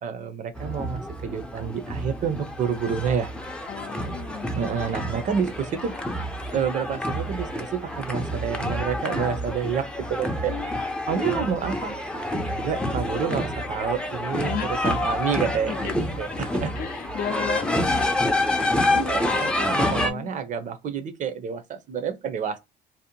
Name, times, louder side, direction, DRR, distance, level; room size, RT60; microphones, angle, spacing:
voice 1, 0.0-3.3 4.5-5.9 6.5-10.5 11.1-11.9 12.5-16.7 18.5-22.6, right 7 dB, 50° right, 0.5 m, -29 dB
sound 1, 0.5-20.1, left 1 dB, 5° left, 0.4 m, -28 dB
voice 2, 3.7-4.5 10.5-10.9 14.4-14.8 15.7-15.9 16.8-18.1 19.0-19.3 19.8-20.3, left 8 dB, 60° left, 0.5 m, -34 dB
2.6 x 2.0 x 2.8 m
cardioid pair, 110°, 17 cm